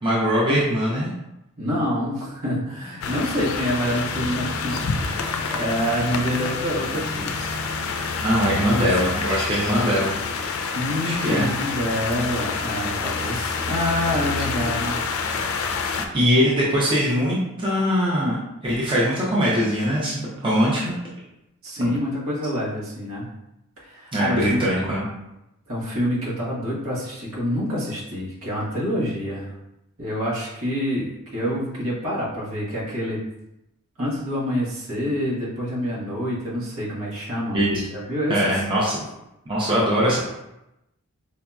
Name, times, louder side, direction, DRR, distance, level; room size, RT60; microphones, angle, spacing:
voice 1, 0.0-1.1 8.2-10.1 11.0-11.5 16.1-18.4 18.6-20.9 24.1-25.0 37.5-37.8 38.3-39.0 39.5-40.2, equal, 25° right, -7 dB, 0.7 m, -21 dB
voice 2, 1.6-7.5 8.5-8.9 10.7-15.0 21.6-23.3 23.8-24.6 25.7-29.5 30.0-33.2 34.0-37.6 37.9-38.6, equal, 70° right, -7 dB, 1.5 m, -27 dB
sound 1, 3.0-16.1, left 4 dB, 65° left, 0.4 m, -27 dB
4.8 x 2.8 x 2.3 m, 0.89 s
head